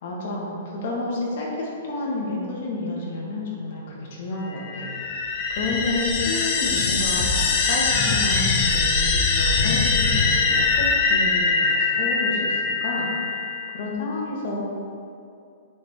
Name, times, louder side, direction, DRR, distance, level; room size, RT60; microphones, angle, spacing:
voice 1, 0.0-5.0 5.5-13.1 13.7-14.6, left 2 dB, 50° left, -4 dB, 1.7 m, -30 dB
sound 1, 4.5-13.8, left 4 dB, 35° left, 0.7 m, -22 dB
8.5 x 4.6 x 3.7 m, 2.5 s
hypercardioid pair, 170°, 0 cm